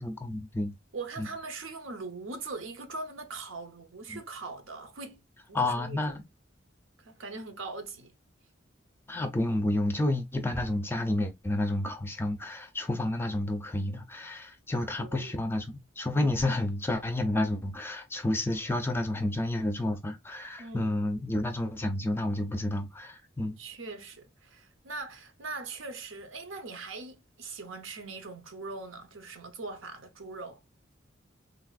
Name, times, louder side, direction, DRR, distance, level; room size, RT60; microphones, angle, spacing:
voice 1, 0.0-0.7 1.2-1.3 5.5-6.2 9.1-23.6, left 1 dB, 10° left, 0.4 m, -30 dB
voice 2, 0.9-5.2 5.5-6.2 7.0-8.1 14.8-15.4 20.6-21.0 23.6-30.6, right 3 dB, 85° right, 0.7 m, -41 dB
3.3 x 2.4 x 2.3 m
head